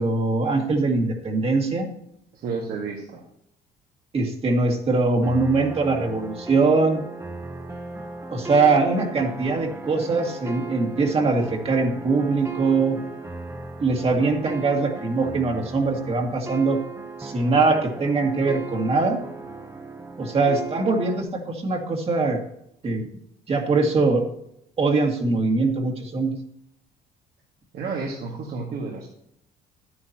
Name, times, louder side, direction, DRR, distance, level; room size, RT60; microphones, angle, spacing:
voice 1, 0.0-1.9 4.1-7.0 8.3-13.0 13.8-16.8 17.2-19.2 20.2-22.4 22.8-23.1 23.5-24.2 24.8-26.3, right 3 dB, 35° right, 2 dB, 2.1 m, -22 dB
voice 2, 2.3-3.2 27.7-29.1, right 4 dB, 65° right, -2 dB, 2.0 m, -31 dB
sound 1, 5.2-21.2, right 3 dB, 15° right, 1.1 m, -37 dB
11.0 x 9.7 x 2.9 m, 0.76 s
cardioid pair, 110°, 17 cm